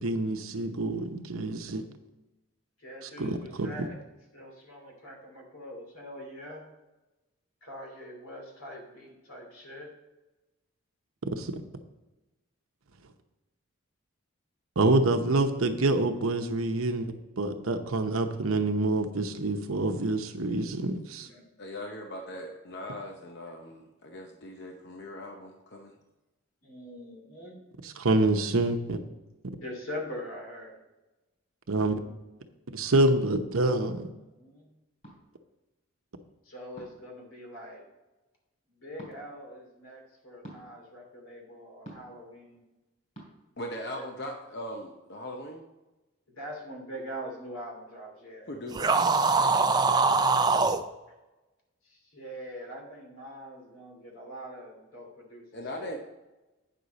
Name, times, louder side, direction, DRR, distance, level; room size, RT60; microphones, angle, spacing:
voice 1, 0.0-1.8 3.0-3.9 11.4-11.5 14.8-21.3 27.8-29.0 31.7-31.9 32.7-34.1, right 2 dB, 85° right, 6 dB, 0.9 m, -27 dB
voice 2, 2.8-4.0 4.3-6.7 7.6-9.9 21.2-21.4 26.6-27.6 29.5-30.8 33.7-33.9 34.3-34.7 36.4-37.8 38.8-42.6 43.9-44.1 46.3-48.5 51.8-56.0, equal, 75° left, 0 dB, 2.8 m, -43 dB
voice 3, 21.6-25.9 43.6-45.7 48.5-49.2 55.5-56.0, left 1 dB, 50° left, 3 dB, 0.8 m, -40 dB
sound 1, 35.0-35.2 36.8-37.1 38.9-39.2 40.4-40.6 41.8-42.2 43.1-43.3, right 1 dB, 35° left, 3.4 m, -46 dB
sound 2, 48.7-50.8, right 4 dB, 20° right, 0.4 m, -23 dB
9.3 x 6.4 x 4.0 m, 1.1 s
head